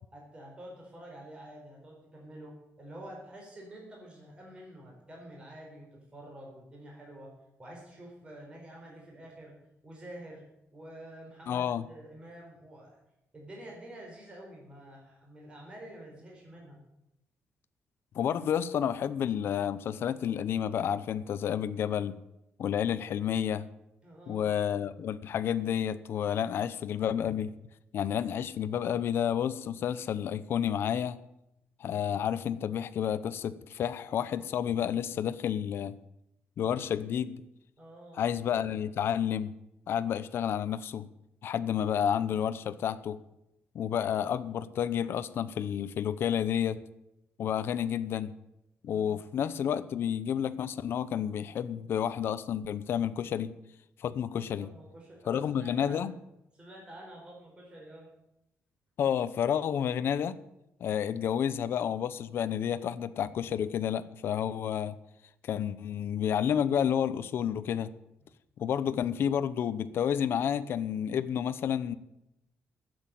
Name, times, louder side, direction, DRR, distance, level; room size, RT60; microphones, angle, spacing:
voice 1, 0.1-7.3 7.6-9.5 9.8-10.4 10.7-13.0 13.3-16.8 24.0-24.5 37.8-38.2 48.8-49.2 54.6-56.1 56.5-58.1, right 1 dB, 25° right, -1 dB, 4.3 m, -48 dB
voice 2, 11.5-11.8 18.1-22.2 22.6-23.7 24.3-27.5 27.9-31.2 31.8-36.0 36.6-37.4 38.1-39.5 39.9-41.1 41.4-43.2 43.7-46.8 47.4-48.3 48.8-53.5 54.0-54.7 55.3-56.1 59.0-60.4 60.8-65.0 65.4-67.9 68.6-71.9, left 9 dB, 60° left, 13 dB, 0.7 m, -30 dB
12.5 x 8.0 x 9.1 m, 0.86 s
wide cardioid pair, 170°, 4 cm